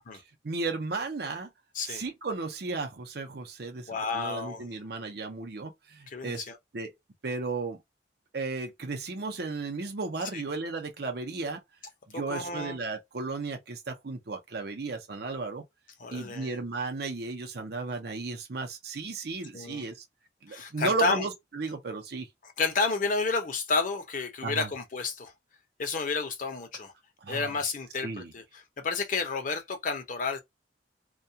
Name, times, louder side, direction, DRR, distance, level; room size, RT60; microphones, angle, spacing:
voice 1, 0.4-1.5 1.9-6.4 6.7-6.9 7.2-7.8 8.3-11.6 12.1-15.6 16.1-20.0 20.4-22.3 24.4-24.7 27.2-27.5 28.0-28.3, right 3 dB, 60° right, 0.6 m, -34 dB
voice 2, 3.9-4.6 6.1-6.6 10.3-10.4 12.1-12.8 16.0-16.5 19.5-19.9 20.5-21.3 22.4-25.3 25.8-26.9 27.3-30.4, left 4 dB, 45° left, 0.7 m, -31 dB
2.3 x 2.3 x 2.7 m
head